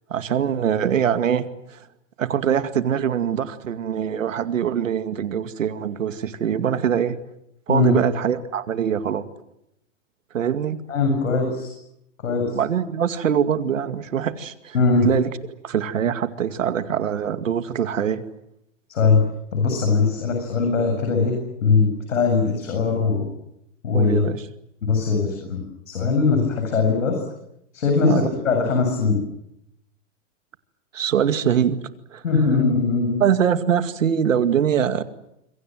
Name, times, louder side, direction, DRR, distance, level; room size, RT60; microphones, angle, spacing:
voice 1, 0.1-1.8 2.2-7.2 7.7-9.3 10.3-10.8 12.5-14.7 15.0-15.3 15.6-18.2 23.9-24.4 28.0-28.3 30.9-31.8 32.1-32.2 33.2-35.0, right 8 dB, 85° right, 10 dB, 2.3 m, -23 dB
voice 2, 10.9-11.7 12.2-12.6 14.7-15.1 18.9-19.2 19.5-21.3 21.6-23.3 23.8-24.2 24.8-25.6 25.9-27.2 27.7-29.2 32.2-33.2, left 4 dB, 85° left, 3 dB, 8.0 m, -20 dB
27.5 x 24.0 x 7.8 m, 0.80 s
hypercardioid pair, 125°, 38 cm